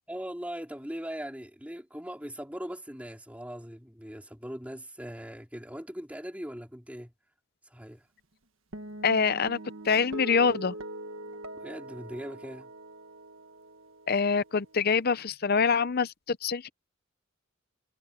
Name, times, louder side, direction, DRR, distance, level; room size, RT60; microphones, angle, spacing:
voice 1, 0.1-7.1 7.7-8.1 11.5-12.7, equal, 5° right, 4.0 m, -40 dB
Guitar, 8.7-15.3, right 1 dB, 70° right, 1.7 m, -43 dB
voice 2, 9.0-9.6 9.8-10.7 14.1-16.7, left 5 dB, 45° left, 0.6 m, -25 dB
head